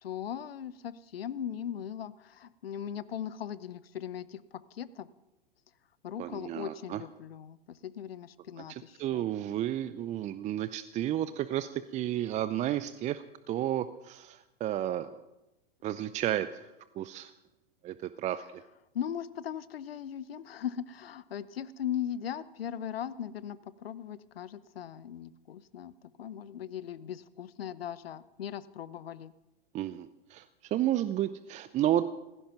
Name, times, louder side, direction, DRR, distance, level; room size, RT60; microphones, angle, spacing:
voice 1, 0.0-5.1 6.0-9.3 18.9-25.9 26.2-29.3, left 9 dB, 75° left, 17 dB, 0.8 m, -39 dB
voice 2, 6.2-7.0 8.7-15.2 15.8-16.5 17.0-17.3 17.8-18.4 29.7-30.4 30.7-32.1, right 12 dB, 25° right, 14 dB, 0.5 m, -32 dB
15.5 x 15.5 x 5.9 m, 0.96 s
hypercardioid pair, 100°, 30 cm